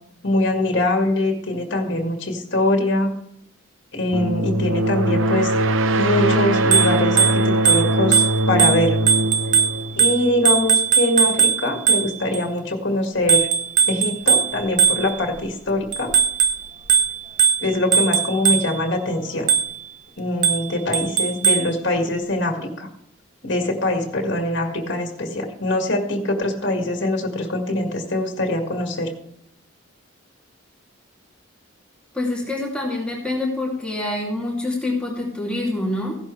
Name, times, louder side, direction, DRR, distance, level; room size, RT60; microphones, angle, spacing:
voice 1, 0.2-3.2 3.9-5.5 6.0-9.0 10.0-13.5 13.9-16.2 17.6-19.5 20.2-22.9 23.4-29.1, left 1 dB, 55° left, 2 dB, 2.0 m, -23 dB
sound 1, 4.1-10.8, right 1 dB, 75° right, 0.7 m, -21 dB
Bicycle bell, 6.6-12.4 13.3-15.4 15.9-18.9 19.5-19.9 20.4-21.8, right 7 dB, 40° right, 0.8 m, -20 dB
voice 2, 32.1-36.2, left 2 dB, 5° left, -4 dB, 2.7 m, -26 dB
16.0 x 11.5 x 3.3 m, 0.73 s
head